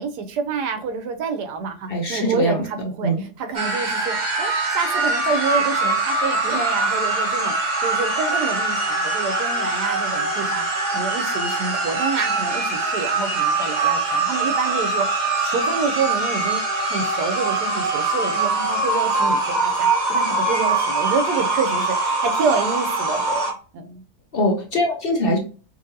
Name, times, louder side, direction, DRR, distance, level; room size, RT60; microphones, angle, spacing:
voice 1, 0.0-10.7 10.9-24.0, right 5 dB, 80° right, 7 dB, 1.3 m, -28 dB
voice 2, 1.9-2.6 3.0-3.2 24.3-25.4, left 1 dB, 55° left, 1 dB, 0.6 m, -22 dB
sound 1, 3.5-23.5, right 3 dB, 35° right, 0.9 m, -23 dB
4.2 x 2.6 x 2.6 m, 0.38 s
omnidirectional pair, 1.7 m